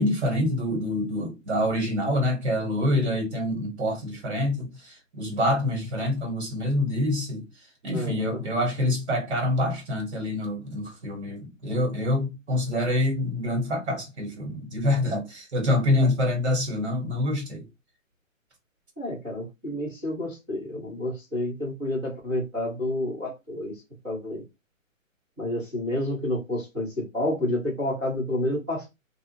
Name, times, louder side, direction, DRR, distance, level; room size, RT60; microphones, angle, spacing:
voice 1, 0.0-7.5 7.8-17.6, left 1 dB, 55° right, 1.7 m, -26 dB
voice 2, 7.9-8.4 19.0-23.7 24.0-24.4 25.4-28.8, left 1 dB, 5° right, 0.5 m, -29 dB
2.5 x 2.4 x 2.6 m
hypercardioid pair, 150°, 40 cm